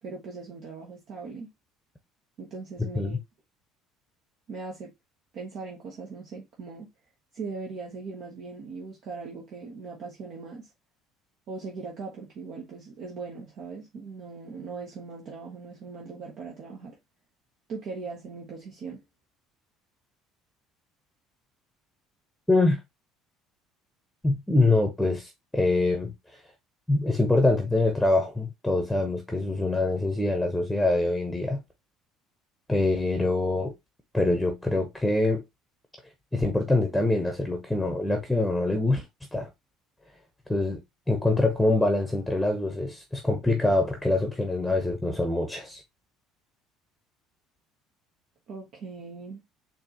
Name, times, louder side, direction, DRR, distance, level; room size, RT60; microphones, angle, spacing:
voice 1, 0.0-1.5 2.4-3.2 4.5-4.9 5.3-6.9 7.3-10.7 11.5-17.0 17.7-19.0 48.5-49.4, right 4 dB, 60° right, 1.0 m, -39 dB
voice 2, 22.5-22.8 24.2-26.1 26.9-31.6 32.7-33.7 34.1-35.4 36.3-39.0 39.3-39.5 40.5-40.8 41.1-45.8, left 2 dB, 5° left, 0.9 m, -24 dB
4.4 x 2.8 x 2.8 m
hypercardioid pair, 70°, 0 cm